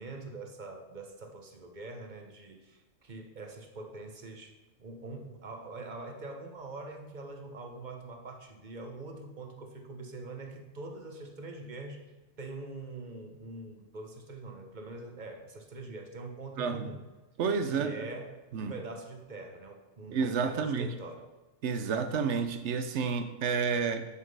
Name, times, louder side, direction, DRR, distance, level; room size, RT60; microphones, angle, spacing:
voice 1, 0.0-17.1 17.7-21.3, right 2 dB, 40° right, 4 dB, 1.1 m, -44 dB
voice 2, 16.6-16.9 17.4-18.1 18.5-18.7 20.1-20.9 21.6-24.1, right 5 dB, 75° right, 9 dB, 1.0 m, -30 dB
7.2 x 6.6 x 5.5 m, 1.2 s
omnidirectional pair, 1.2 m